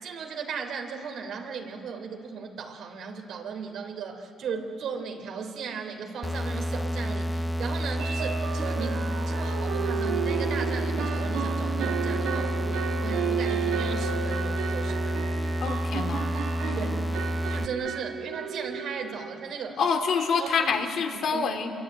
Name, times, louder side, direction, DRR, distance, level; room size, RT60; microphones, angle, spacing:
voice 1, 0.0-15.3 16.8-16.9 17.5-19.8 20.4-20.8 21.3-21.5, right 5 dB, 75° right, 4 dB, 3.4 m, -36 dB
sound 1, 4.0-4.1 4.5-4.7 5.0-5.1 8.0-19.4, right 7 dB, 90° right, 2.0 m, -33 dB
sound 2, 6.2-17.7, equal, 10° left, 0.7 m, -29 dB
voice 2, 15.6-16.3 16.6-17.0 19.8-21.7, left 5 dB, 70° left, 5 dB, 2.7 m, -27 dB
27.0 x 23.0 x 9.2 m, 2.8 s
cardioid pair, 90°, 0 cm